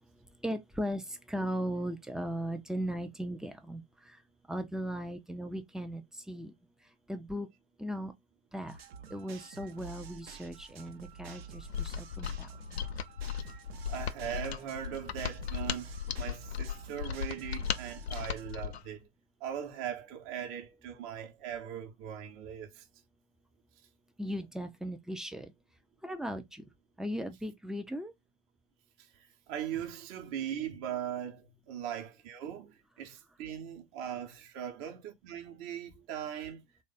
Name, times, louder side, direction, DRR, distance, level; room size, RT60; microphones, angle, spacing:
voice 1, 0.4-1.0 1.3-3.8 4.5-6.0 6.3-6.5 7.1-7.5 7.8-8.1 8.5-8.8 9.1-12.5 24.2-25.5 26.0-26.6 27.0-28.1, equal, ahead, 0.4 m, -37 dB
sound 1, 8.7-18.5, right 6 dB, 70° right, 0.8 m, -49 dB
Mechanisms, 11.6-18.9, left 8 dB, 85° left, 0.5 m, -37 dB
voice 2, 13.9-19.1 19.4-22.9 29.0-36.6, right 9 dB, 40° right, 1.0 m, -40 dB
3.3 x 2.5 x 4.0 m
hypercardioid pair, 105°, 32 cm